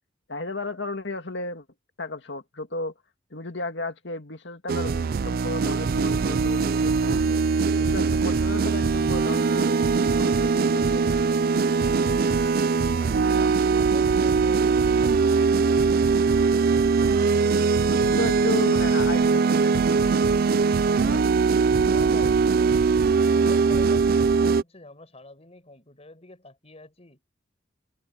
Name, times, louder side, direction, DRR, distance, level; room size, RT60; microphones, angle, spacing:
voice 1, 0.3-1.6 2.0-2.9 3.3-7.4 7.8-11.1 17.9-20.4 21.0-21.2, left 2 dB, 65° left, 2.3 m, -34 dB
sound 1, 4.7-24.6, right 5 dB, 50° right, 0.4 m, -21 dB
voice 2, 12.7-15.5 21.1-23.1 23.4-27.2, left 2 dB, 35° left, 5.8 m, -46 dB
head